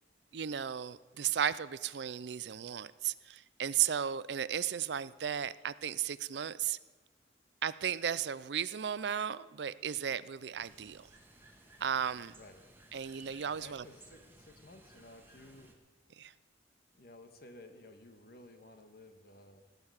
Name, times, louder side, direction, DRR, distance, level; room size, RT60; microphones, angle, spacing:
voice 1, 0.3-6.8 7.6-11.1 11.8-12.3 12.9-13.8 16.2-16.3, right 9 dB, 75° right, 17 dB, 0.5 m, -35 dB
sound 1, 10.6-15.7, right 2 dB, 15° right, 1.7 m, -59 dB
voice 2, 13.6-15.7 16.9-19.6, left 1 dB, 60° left, 7 dB, 1.6 m, -55 dB
17.5 x 6.8 x 9.7 m, 1.3 s
head